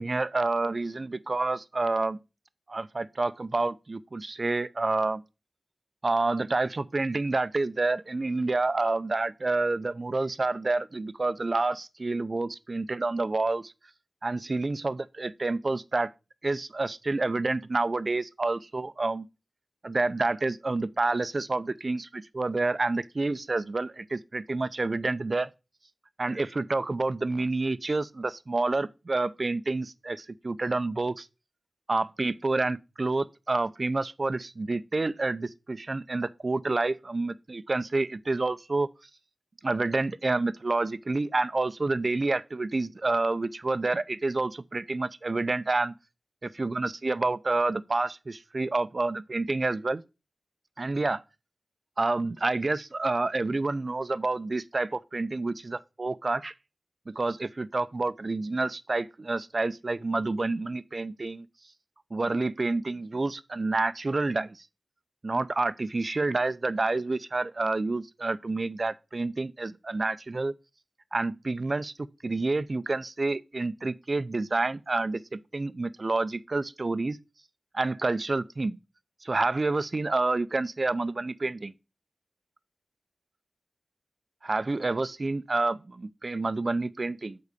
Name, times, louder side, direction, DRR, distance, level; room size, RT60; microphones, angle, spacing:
voice 1, 0.0-2.2 2.7-5.2 6.0-13.7 14.2-16.1 16.4-19.3 19.8-25.5 26.2-31.3 31.9-38.9 39.6-45.9 46.4-50.0 50.8-51.2 52.0-56.5 57.1-61.5 62.1-64.7 65.2-70.5 71.1-71.9 72.2-77.2 77.7-78.8 79.2-81.7 84.4-87.4, right 3 dB, 50° right, 0.6 m, -28 dB
8.3 x 3.9 x 6.9 m
wide cardioid pair, 50°, 0 cm